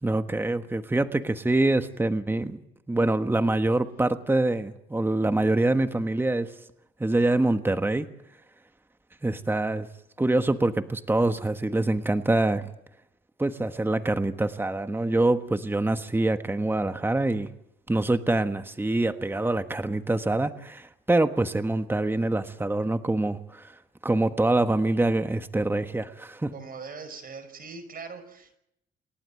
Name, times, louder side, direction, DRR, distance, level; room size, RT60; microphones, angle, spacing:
voice 1, 0.0-2.6 2.9-6.5 7.0-8.1 9.2-9.9 10.2-12.6 13.4-17.5 17.9-23.7 24.0-26.5, right 2 dB, 10° right, 9 dB, 1.3 m, -25 dB
voice 2, 26.5-28.6, right 4 dB, 45° right, 9 dB, 5.6 m, -41 dB
29.0 x 11.5 x 9.2 m, 0.79 s
cardioid pair, 90°, 20 cm